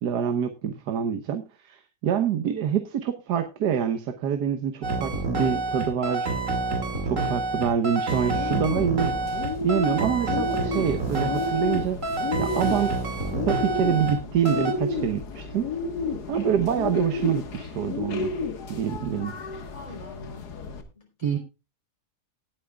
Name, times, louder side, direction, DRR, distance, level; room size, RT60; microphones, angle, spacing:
voice 1, 0.0-6.3 7.0-9.1 9.6-12.0 12.4-13.1 13.5-15.7 16.3-18.3 18.7-19.4 21.2-21.4, right 8 dB, 90° right, 9 dB, 1.6 m, -26 dB
sound 1, 4.8-14.2 14.5-14.7, right 3 dB, 50° right, 2.5 m, -28 dB
Bird, 8.1-20.8, left 4 dB, 75° left, 2.1 m, -32 dB
voice 2, 19.7-20.5 20.9-21.4, left 3 dB, 20° left, 1 dB, 3.5 m, -44 dB
19.0 x 8.8 x 2.3 m, 0.28 s
omnidirectional pair, 1.7 m